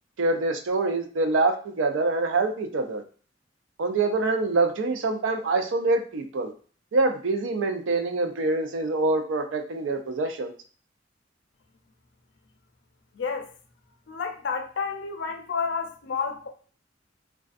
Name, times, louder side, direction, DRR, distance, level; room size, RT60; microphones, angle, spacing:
voice 1, 0.2-3.0 3.8-6.5 6.9-10.5, right 3 dB, 80° right, 0.4 m, -25 dB
voice 2, 13.1-13.5 14.1-16.5, left 5 dB, 65° left, 0.5 m, -30 dB
2.4 x 2.3 x 2.4 m
head